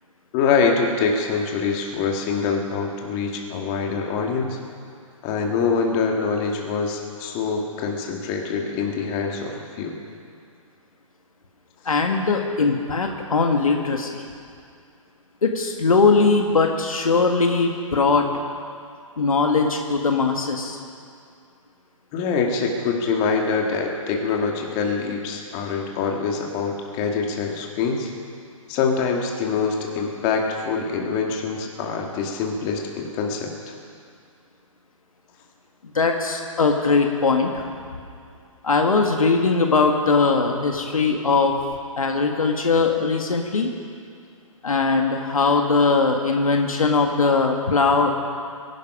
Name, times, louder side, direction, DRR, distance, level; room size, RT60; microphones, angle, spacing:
voice 1, 0.3-4.6 5.2-10.0 22.1-28.1 28.7-33.7, left 5 dB, 35° left, 1 dB, 2.2 m, -24 dB
voice 2, 11.9-14.1 15.4-18.3 19.2-20.8 35.9-37.6 38.6-41.5 42.0-43.7 44.6-48.1, left 4 dB, 80° left, 3 dB, 1.8 m, -20 dB
21.0 x 12.0 x 5.1 m, 2.3 s
figure-of-eight pair, 130°, 18 cm